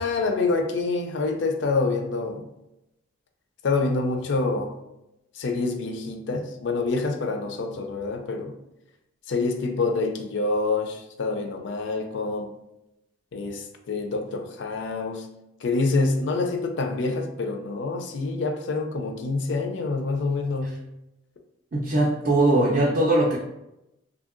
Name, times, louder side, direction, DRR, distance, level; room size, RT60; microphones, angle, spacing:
voice 1, 0.0-2.5 3.6-4.7 5.3-8.5 9.3-12.5 13.3-15.3 15.6-20.8, left 3 dB, 70° left, 4 dB, 0.4 m, -26 dB
voice 2, 21.7-23.4, right 2 dB, 45° right, -4 dB, 0.4 m, -20 dB
2.7 x 2.6 x 2.5 m, 0.90 s
head